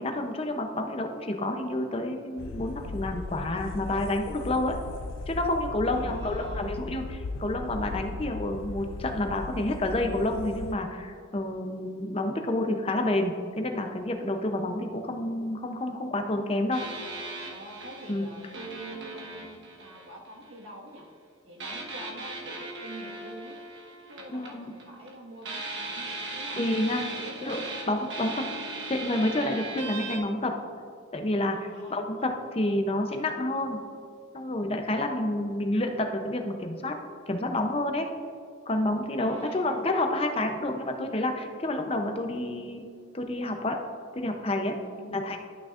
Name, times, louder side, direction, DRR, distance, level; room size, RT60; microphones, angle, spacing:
voice 1, 0.0-4.8 5.3-16.8 18.1-18.4 24.3-24.7 26.6-27.0 27.4-27.6 27.9-28.5 28.9-30.5 31.1-33.8 34.3-37.0 37.3-38.1 38.7-42.8 43.1-43.8 44.2-44.8 45.1-45.4, left 1 dB, 30° left, 4 dB, 0.6 m, -29 dB
sound 1, 2.4-10.7, left 3 dB, 80° left, 0.4 m, -38 dB
voice 2, 5.9-6.8 17.4-21.1 21.4-23.6 24.1-26.6 26.9-28.0 31.5-32.3 39.2-39.9 44.9-45.3, right 1 dB, 85° right, -2 dB, 1.6 m, -45 dB
sound 2, 16.7-20.6 21.6-25.1 25.4-30.2, right 2 dB, 65° right, 1.2 m, -38 dB
12.0 x 6.2 x 2.5 m, 2.3 s
head